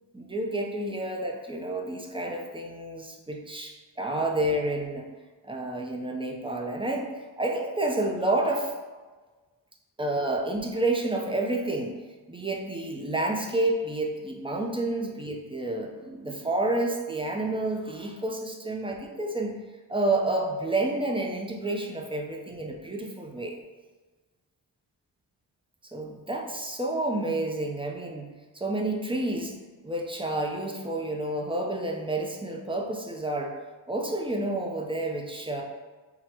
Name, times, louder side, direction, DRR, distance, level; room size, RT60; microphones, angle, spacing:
voice 1, 0.1-5.1 5.4-7.1 7.4-8.7 10.0-11.9 12.3-19.6 19.9-23.6 25.9-29.6 29.8-33.5 33.9-35.6, right 2 dB, 10° right, 0 dB, 0.5 m, -29 dB
3.8 x 2.1 x 4.4 m, 1.3 s
cardioid pair, 70°, 46 cm